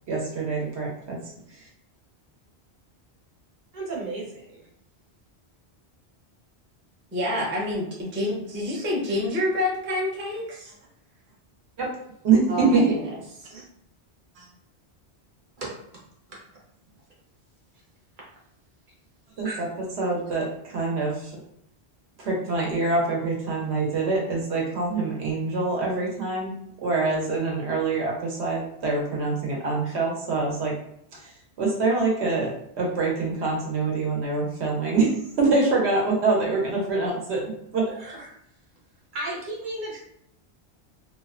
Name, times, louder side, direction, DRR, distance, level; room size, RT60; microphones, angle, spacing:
voice 1, 0.1-1.2 11.8-11.9 12.2-12.9 19.4-19.7 20.0-21.3 22.2-26.5 26.8-30.7 31.6-35.1 35.4-37.4 37.7-37.9, right 3 dB, 80° right, -2 dB, 1.0 m, -25 dB
voice 2, 3.7-4.7 13.5-13.6 14.3-14.5 15.6-15.7 19.4-19.6 37.9-38.3 39.1-40.0, right 2 dB, 50° right, -4 dB, 0.9 m, -34 dB
voice 3, 7.1-10.7 12.5-13.1, left 1 dB, 15° right, -4 dB, 0.4 m, -28 dB
2.6 x 2.1 x 2.4 m, 0.73 s
omnidirectional pair, 1.1 m